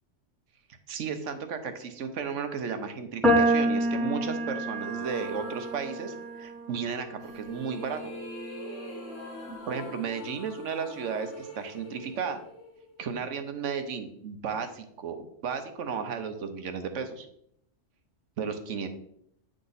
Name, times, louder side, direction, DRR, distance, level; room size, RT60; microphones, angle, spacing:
voice 1, 0.9-8.0 9.7-12.4 13.0-17.3 18.4-18.9, right 6 dB, 75° right, 8 dB, 1.1 m, -34 dB
sound 1, 3.2-9.6, right 1 dB, ahead, 1.0 m, -29 dB
sound 2, 4.8-6.5 7.2-13.3, equal, 85° left, 1.9 m, -44 dB
8.8 x 3.7 x 4.0 m, 0.71 s
omnidirectional pair, 1.3 m